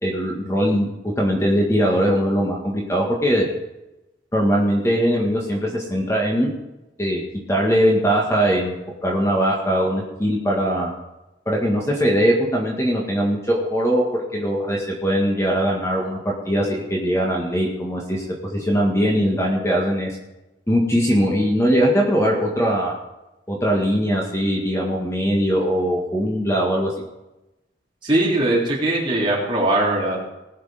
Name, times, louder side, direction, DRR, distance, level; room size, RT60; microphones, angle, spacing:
voice 1, 0.0-3.5 4.3-6.5 7.0-7.2 7.5-10.9 11.5-20.2 20.7-23.0 23.5-26.9, equal, 15° left, -1 dB, 1.8 m, -21 dB
voice 2, 28.0-30.3, right 1 dB, 30° right, -4 dB, 3.6 m, -20 dB
19.5 x 6.7 x 5.1 m, 0.97 s
head